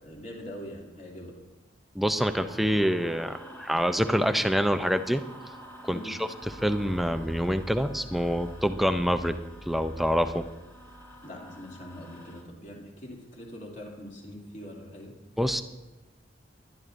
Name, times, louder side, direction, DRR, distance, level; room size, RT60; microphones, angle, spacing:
voice 1, 0.0-1.3 5.9-6.2 11.2-15.1, equal, 40° left, -2 dB, 2.5 m, -43 dB
voice 2, 2.0-5.2 5.8-9.4 9.7-10.5 15.4-15.6, equal, ahead, 8 dB, 0.5 m, -26 dB
sound 1, 2.2-12.4, equal, 15° left, 1.6 m, -48 dB
21.5 x 11.0 x 2.6 m, 1.1 s
head